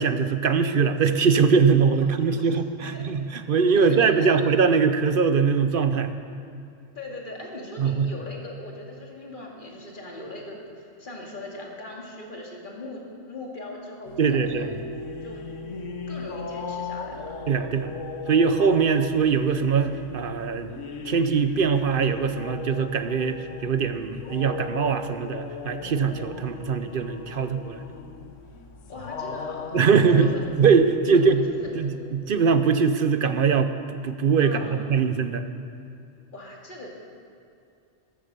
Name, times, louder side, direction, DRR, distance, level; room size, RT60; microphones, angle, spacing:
voice 1, 0.0-6.1 7.8-8.1 14.2-14.7 17.5-17.9 18.3-20.7 21.0-27.8 29.7-30.3 30.6-31.4 31.7-33.7 34.0-35.4, right 5 dB, 55° right, 10 dB, 0.8 m, -22 dB
voice 2, 2.8-3.3 3.7-4.3 6.9-14.7 15.2-15.4 16.1-17.4 28.9-30.4 31.0-31.2 31.6-31.7 34.4-34.9 36.3-36.9, left 2 dB, 45° left, -1 dB, 2.3 m, -40 dB
sound 1, 14.0-32.6, left 4 dB, 80° left, 1.2 m, -37 dB
14.0 x 11.5 x 6.7 m, 2.5 s
omnidirectional pair, 1.2 m